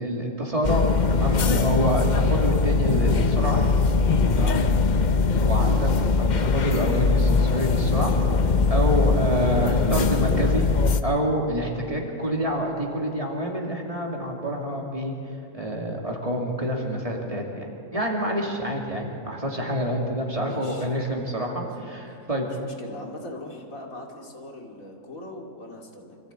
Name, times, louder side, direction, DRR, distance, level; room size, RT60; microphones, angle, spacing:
voice 1, 0.0-3.6 4.3-4.6 5.4-5.9 6.2-8.1 8.7-10.7 11.0-15.1 15.5-22.5, equal, 25° right, -1 dB, 2.5 m, -27 dB
sound 1, 0.6-11.0, left 4 dB, 40° left, 0.7 m, -21 dB
voice 2, 20.4-20.9 22.6-26.2, left 1 dB, 70° left, 1 dB, 2.8 m, -40 dB
25.5 x 14.5 x 8.5 m, 2.6 s
omnidirectional pair, 1.5 m